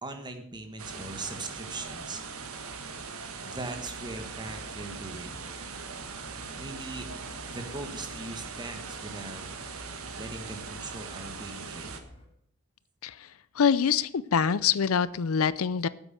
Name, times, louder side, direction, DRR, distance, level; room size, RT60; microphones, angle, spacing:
voice 1, 0.0-2.2 3.4-5.4 6.6-7.1 7.4-9.5 10.1-11.9, right 2 dB, 20° right, 6 dB, 1.5 m, -40 dB
sound 1, 0.8-12.0, right 5 dB, 85° right, 1.4 m, -40 dB
sound 2, 3.6-12.3, left 1 dB, 30° left, 2.8 m, -51 dB
voice 2, 13.6-15.9, left 7 dB, 75° left, 18 dB, 0.5 m, -25 dB
9.8 x 7.9 x 7.8 m, 0.69 s
head